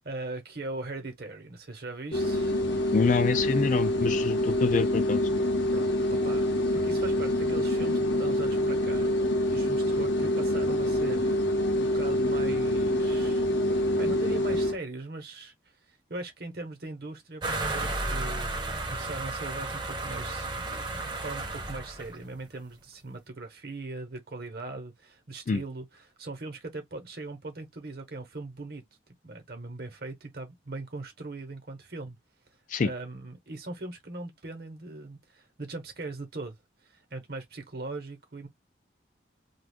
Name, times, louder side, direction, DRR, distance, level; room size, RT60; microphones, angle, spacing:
voice 1, 0.0-2.6 5.7-6.5 6.7-9.1 9.4-11.4 11.7-13.4 13.7-15.5 15.9-28.8 29.2-32.2 32.8-36.6 36.8-38.5, right 2 dB, 55° right, 0.9 m, -40 dB
sound 1, 2.1-14.8, left 1 dB, 70° left, 0.7 m, -26 dB
voice 2, 2.9-5.2 25.5-25.6 32.7-32.9, left 4 dB, 40° left, 0.3 m, -26 dB
sound 2, 17.4-22.2, right 2 dB, 25° right, 0.7 m, -33 dB
2.5 x 2.3 x 3.5 m
head